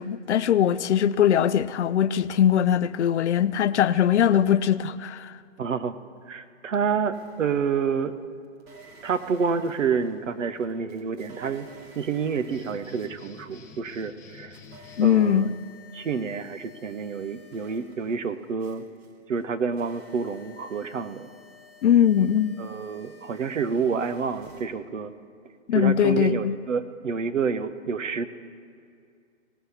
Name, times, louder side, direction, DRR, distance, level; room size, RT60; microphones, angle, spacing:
voice 1, 0.0-5.4 15.0-15.5 21.8-22.5 25.7-26.6, left 9 dB, 65° left, 0.5 m, -21 dB
voice 2, 5.6-6.0 6.3-8.1 9.0-11.7 11.9-14.6 15.0-15.5 15.9-18.8 19.3-21.3 22.6-25.1 25.7-28.3, right 6 dB, 85° right, 0.9 m, -28 dB
sound 1, 7.1-8.0 8.6-14.0 14.3-24.7, left 1 dB, 55° right, 2.4 m, -52 dB
sound 2, 12.5-15.2, left 5 dB, 5° left, 0.6 m, -48 dB
18.0 x 6.5 x 5.6 m
hypercardioid pair, 140°, 37 cm